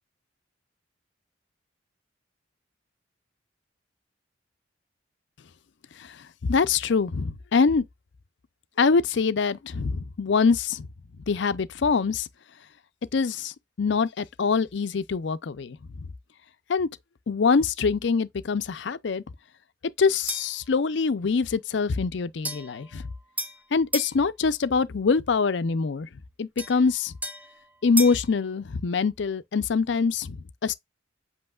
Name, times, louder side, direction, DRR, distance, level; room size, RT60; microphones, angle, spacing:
voice 1, 6.0-7.9 8.8-10.9 11.3-12.3 13.1-16.1 16.7-16.9 17.3-19.2 20.0-23.0 23.7-26.1 26.4-27.1 27.8-30.7, left 5 dB, 65° left, 0.5 m, -24 dB
sound 1, 20.3-20.6 22.4-24.2 26.6-28.3, right 1 dB, 5° right, 0.6 m, -34 dB
7.8 x 2.8 x 2.3 m
head